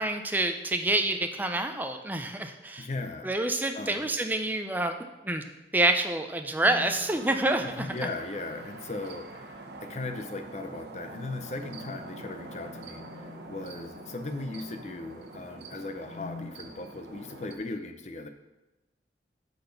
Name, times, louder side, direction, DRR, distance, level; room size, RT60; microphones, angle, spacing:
voice 1, 0.0-2.9 3.2-5.4 5.7-8.1, right 2 dB, 10° right, 6 dB, 0.5 m, -28 dB
voice 2, 2.8-3.3 3.7-4.1 7.6-18.3, left 2 dB, 40° left, 7 dB, 0.6 m, -38 dB
sound 1, 6.6-7.0 8.3-8.9 11.1-15.2 15.9-16.6, left 4 dB, 60° left, 1.6 m, -48 dB
sound 2, 6.8-17.6, right 2 dB, 75° right, 1.0 m, -45 dB
8.3 x 4.2 x 5.8 m, 1.0 s
head